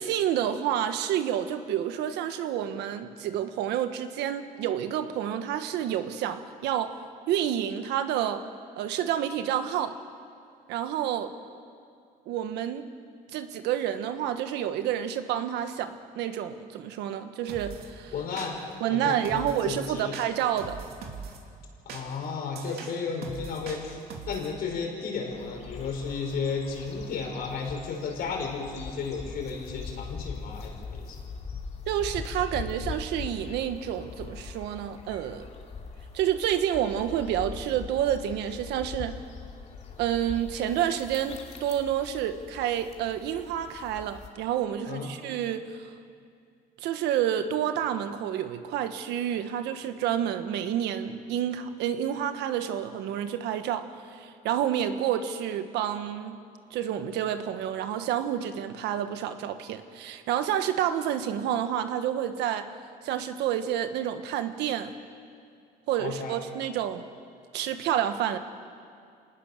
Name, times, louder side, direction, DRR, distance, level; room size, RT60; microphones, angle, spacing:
voice 1, 0.0-7.0 7.3-8.4 8.8-10.0 10.7-11.3 12.3-12.9 13.3-18.1 18.8-20.8 31.9-35.5 36.1-39.2 40.0-45.9 46.8-53.9 54.1-56.4 56.7-62.7 63.0-65.0 65.9-67.1 67.5-68.4, right 10 dB, 85° right, 9 dB, 1.5 m, -29 dB
sound 1, 17.5-17.9 18.4-18.8 19.2-19.7 20.1-21.4 21.9-24.5, right 5 dB, 65° right, 3.0 m, -42 dB
voice 2, 18.1-18.6 18.9-20.1 21.9-24.0 24.3-31.2 44.9-45.1 66.0-66.4, left 5 dB, 65° left, 1 dB, 5.6 m, -33 dB
sound 2, 25.3-44.3, left 5 dB, 40° left, 2.6 m, -41 dB
26.5 x 19.5 x 6.8 m, 2.3 s
cardioid pair, 110°, 17 cm